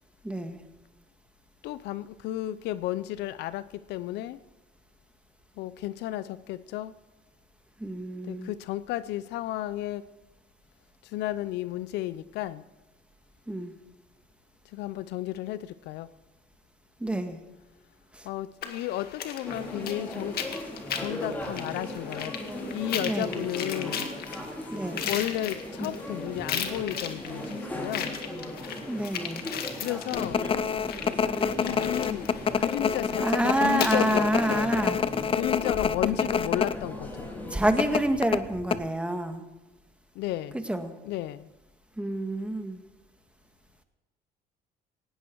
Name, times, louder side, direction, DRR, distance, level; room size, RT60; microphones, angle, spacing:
voice 1, 0.2-0.6 7.8-8.5 13.5-13.7 17.0-17.4 18.1-18.3 23.0-23.4 24.7-25.1 28.9-29.4 33.2-35.0 37.5-39.4 40.7-40.9 42.0-42.8, right 1 dB, 5° right, 1.8 m, -28 dB
voice 2, 1.6-4.4 5.6-6.9 8.2-10.0 11.0-12.6 14.6-16.1 18.2-20.6 21.0-24.1 25.0-28.2 29.8-30.5 31.6-34.8 35.3-37.3 40.1-40.6 41.0-41.5, left 14 dB, 85° left, 0.6 m, -33 dB
sound 1, 18.6-35.3, left 8 dB, 65° left, 1.9 m, -38 dB
sound 2, 19.4-38.0, left 1 dB, 10° left, 4.2 m, -38 dB
sound 3, 30.1-36.8 37.0-37.2 37.8-38.8, left 6 dB, 35° left, 0.7 m, -27 dB
18.5 x 16.5 x 4.7 m
cardioid pair, 110°, 17 cm